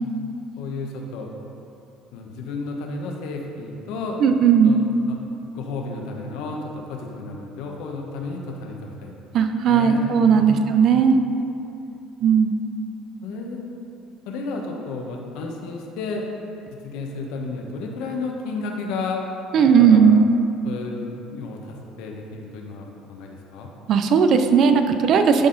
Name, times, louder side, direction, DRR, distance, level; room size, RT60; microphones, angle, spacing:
voice 1, 0.6-1.3 2.1-4.2 4.6-4.8 5.1-5.2 5.5-9.1 9.7-10.7 13.2-13.6 14.3-16.3 16.7-19.2 19.8-20.1 20.6-23.7, left 3 dB, 75° left, 1 dB, 1.0 m, -32 dB
voice 2, 4.2-4.8 9.3-11.2 12.2-12.5 19.5-20.2 23.9-25.5, right 6 dB, 55° right, 7 dB, 0.5 m, -16 dB
11.5 x 4.1 x 3.9 m, 2.8 s
supercardioid pair, 100°, 0 cm